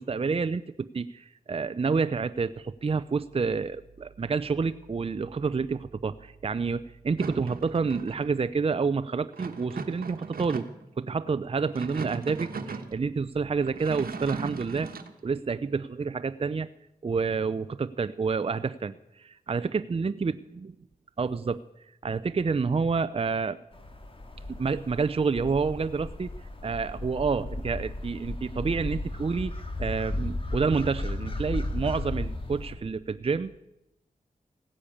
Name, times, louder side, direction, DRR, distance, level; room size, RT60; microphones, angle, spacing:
voice 1, 0.0-10.7 11.0-14.9 15.2-16.7 17.0-20.3 21.2-21.6 22.0-23.6 24.5-26.3 26.6-29.5 29.8-33.6, right 5 dB, 40° right, 13 dB, 0.5 m, -28 dB
sound 1, 7.2-8.3 9.3-10.9 11.6-12.9 13.6-15.1, right 4 dB, 80° right, 1.3 m, -38 dB
sound 2, 23.7-32.8, left 2 dB, 35° left, 2.2 m, -35 dB
16.5 x 10.0 x 8.6 m, 0.90 s
cardioid pair, 50°, 15 cm